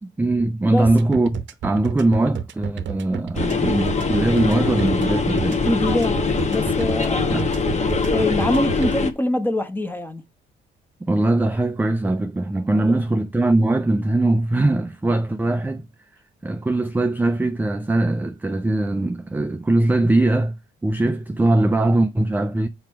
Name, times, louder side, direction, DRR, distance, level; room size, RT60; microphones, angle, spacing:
voice 1, 0.0-5.6 7.3-7.5 11.0-15.9 16.4-22.7, right 2 dB, 10° right, 0.4 m, -21 dB
sound 1, 0.8-8.9, right 8 dB, 65° right, 0.8 m, -30 dB
sound 2, 3.3-9.1, left 4 dB, 35° left, 1.0 m, -22 dB
voice 2, 5.6-10.2 12.7-13.0, left 1 dB, 10° left, 0.9 m, -25 dB
5.8 x 4.7 x 4.4 m
cardioid pair, 90°, 20 cm